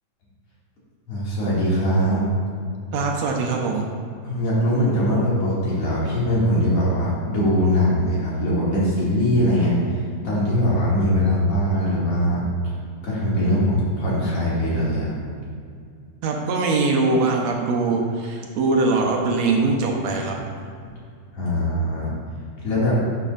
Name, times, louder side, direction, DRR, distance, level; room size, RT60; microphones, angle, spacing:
voice 1, 1.1-2.2 4.2-10.0 10.2-12.4 13.0-15.1 21.3-22.1 22.6-23.0, equal, 55° left, -8 dB, 3.2 m, -21 dB
voice 2, 2.9-3.9 16.2-20.4, right 3 dB, 70° right, 1 dB, 2.0 m, -22 dB
11.0 x 6.9 x 2.5 m, 2.2 s
omnidirectional pair, 3.4 m